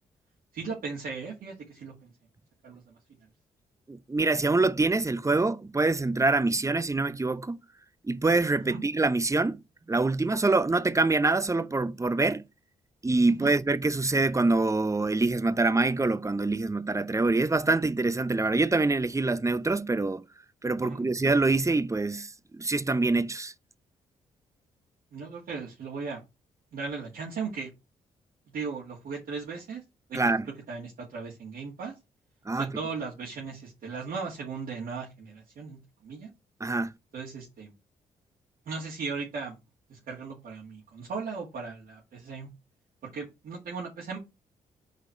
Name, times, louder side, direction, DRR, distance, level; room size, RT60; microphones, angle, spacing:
voice 1, 0.5-2.1 2.6-3.0 8.7-8.8 13.4-13.5 20.8-21.1 25.1-26.2 26.7-27.7 28.5-29.8 30.1-30.2 30.7-32.0 32.5-36.3 37.1-37.7 38.7-39.6 39.9-42.5 43.0-44.2, right 5 dB, 65° right, 2.2 m, -37 dB
voice 2, 3.9-7.6 8.0-9.6 9.9-12.4 13.0-20.2 20.6-23.5 30.1-30.4 32.5-32.7 36.6-36.9, right 3 dB, 20° right, 0.8 m, -25 dB
4.7 x 4.6 x 5.8 m
hypercardioid pair, 45°, 16 cm